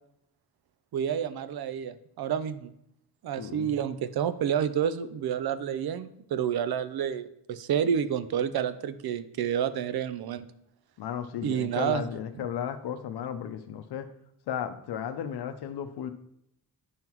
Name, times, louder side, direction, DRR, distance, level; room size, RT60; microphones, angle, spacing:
voice 1, 0.9-2.7 3.2-10.5 11.4-12.0 12.4-12.5, right 8 dB, 70° right, 13 dB, 0.6 m, -29 dB
voice 2, 3.4-3.7 11.0-14.1 14.5-16.1, left 9 dB, 80° left, 8 dB, 0.7 m, -34 dB
9.4 x 5.6 x 3.0 m, 0.76 s
wide cardioid pair, 175°, 38 cm